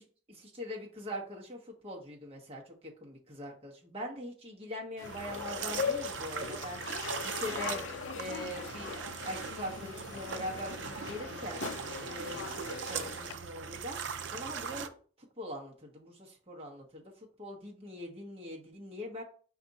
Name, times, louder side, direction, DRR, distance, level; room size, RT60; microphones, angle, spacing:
voice 1, 0.3-7.8 8.1-11.7 12.0-14.9 15.4-17.0 17.4-19.2, equal, 30° right, 0 dB, 1.1 m, -42 dB
sound 1, 5.0-13.4, left 7 dB, 85° left, 0.3 m, -40 dB
sound 2, 5.0-14.9, right 6 dB, 70° right, 0.4 m, -40 dB
5.1 x 2.4 x 4.0 m, 0.42 s
head